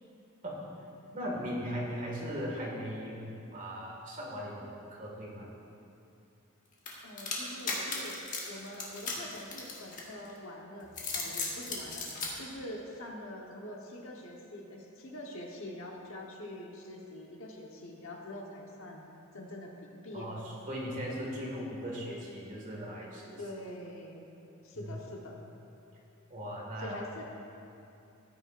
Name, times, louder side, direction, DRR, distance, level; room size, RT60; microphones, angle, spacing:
voice 1, 1.1-5.5 20.1-20.4 20.7-23.4 24.7-25.0 26.3-27.0, equal, 40° right, -4 dB, 1.9 m, -38 dB
sound 1, 6.9-10.3 10.8-12.3, left 4 dB, 40° left, 1.6 m, -36 dB
voice 2, 7.0-12.1 12.4-19.0 19.3-20.3 23.4-24.3 24.6-25.4 26.8-27.2, left 1 dB, 65° left, 0 dB, 1.2 m, -44 dB
14.5 x 10.0 x 2.6 m, 2.8 s
head